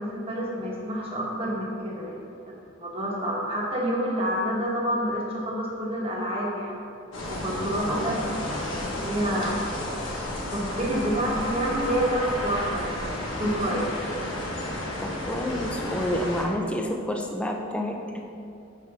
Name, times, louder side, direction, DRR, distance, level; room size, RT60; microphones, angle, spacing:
voice 1, 0.0-6.7 7.3-9.5 10.5-13.8, equal, 30° right, -4 dB, 1.2 m, -28 dB
sound 1, 7.1-16.4, left 1 dB, 80° left, 1.4 m, -32 dB
voice 2, 7.9-8.2 15.0-18.0, left 1 dB, 5° left, 2 dB, 0.5 m, -29 dB
5.9 x 4.9 x 5.3 m, 2.5 s
head